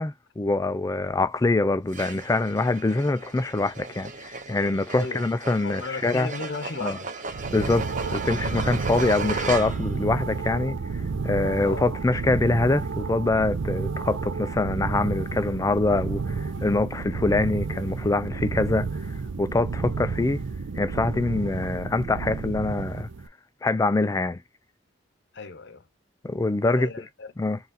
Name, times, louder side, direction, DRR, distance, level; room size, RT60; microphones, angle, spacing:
voice 1, 0.0-6.3 6.8-7.0 7.5-10.8 11.2-18.9 19.4-20.4 20.8-23.1 23.6-24.4 26.2-26.9 27.4-27.6, left 2 dB, 15° left, 0.3 m, -24 dB
sound 1, 1.9-10.0, right 4 dB, 45° right, 0.7 m, -36 dB
voice 2, 5.6-7.1 11.6-11.9 25.3-25.9 26.6-27.3, left 3 dB, 65° left, 0.9 m, -35 dB
sound 2, 7.3-23.3, right 4 dB, 85° right, 0.5 m, -31 dB
4.0 x 2.5 x 4.0 m
head